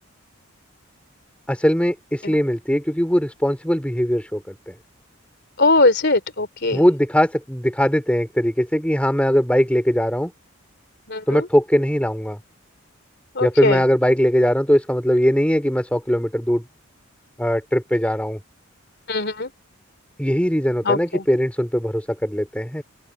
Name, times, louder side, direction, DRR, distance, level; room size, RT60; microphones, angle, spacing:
voice 1, 1.5-4.7 6.7-10.3 11.3-12.4 13.4-16.6 17.4-18.4 20.2-22.8, equal, 5° left, 3.4 m, -20 dB
voice 2, 5.6-6.8 11.1-11.5 13.4-13.8 19.1-19.5 20.8-21.2, left 2 dB, 50° left, 3.4 m, -20 dB
open air
head